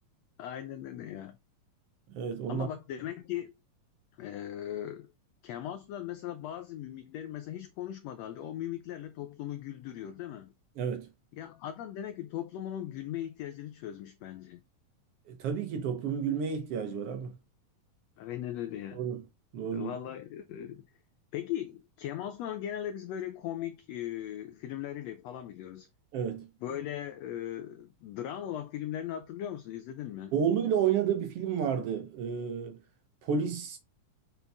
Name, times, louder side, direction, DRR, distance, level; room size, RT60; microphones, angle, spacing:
voice 1, 0.4-1.4 2.5-3.5 4.2-5.1 5.4-10.5 11.3-14.6 18.2-19.0 19.7-20.8 21.3-25.9 26.6-30.3, left 11 dB, 85° left, 1.5 m, -38 dB
voice 2, 2.1-2.7 10.8-11.1 15.3-17.3 18.9-19.2 19.5-19.9 26.1-26.5 30.3-32.8 33.2-33.8, right 7 dB, 65° right, 1.5 m, -31 dB
6.7 x 4.5 x 3.4 m
omnidirectional pair, 3.7 m